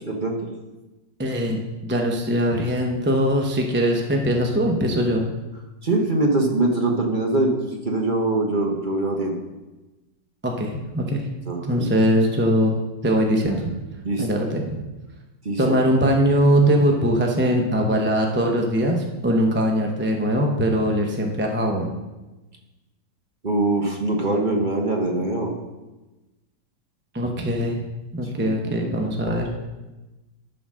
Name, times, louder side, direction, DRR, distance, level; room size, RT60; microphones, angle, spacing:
voice 1, 0.1-0.4 5.8-9.4 11.5-11.9 14.0-14.4 15.4-15.6 23.4-25.5 28.4-29.1, right 2 dB, 35° right, 1 dB, 1.0 m, -23 dB
voice 2, 1.2-5.3 10.4-11.3 11.6-13.7 14.2-14.8 15.6-21.9 27.1-27.8 28.1-29.5, equal, 10° right, 1 dB, 0.5 m, -21 dB
11.0 x 5.0 x 6.2 m, 1.1 s
omnidirectional pair, 1.9 m